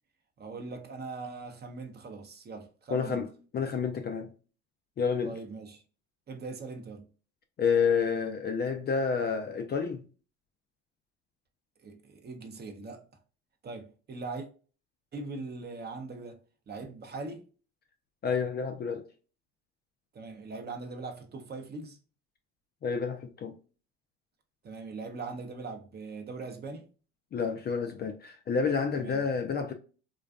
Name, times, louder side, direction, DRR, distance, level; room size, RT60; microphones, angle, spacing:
voice 1, 0.4-3.2 5.2-5.8 6.3-7.1 11.8-13.0 13.6-14.5 15.1-16.4 16.7-17.5 20.1-22.0 24.6-26.9 28.9-29.2, right 3 dB, 30° right, 0.6 m, -41 dB
voice 2, 2.9-3.3 3.5-4.3 5.0-5.3 7.6-10.0 18.2-19.1 22.8-23.5 27.3-29.7, left 6 dB, 30° left, 0.4 m, -29 dB
2.4 x 2.3 x 2.2 m
supercardioid pair, 85°, 32 cm